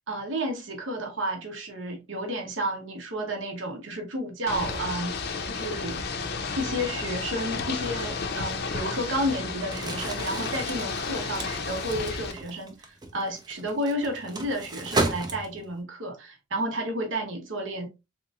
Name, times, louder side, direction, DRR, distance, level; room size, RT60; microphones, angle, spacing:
voice 1, 0.1-6.0 6.6-17.9, right 1 dB, 65° right, 0.9 m, -31 dB
Ocean / Boat Water vehicle, 4.5-12.3, left 4 dB, 50° left, 0.5 m, -32 dB
Crumpling crinkling, 9.6-15.8, right 2 dB, 20° right, 0.5 m, -34 dB
3.8 x 2.9 x 2.3 m
head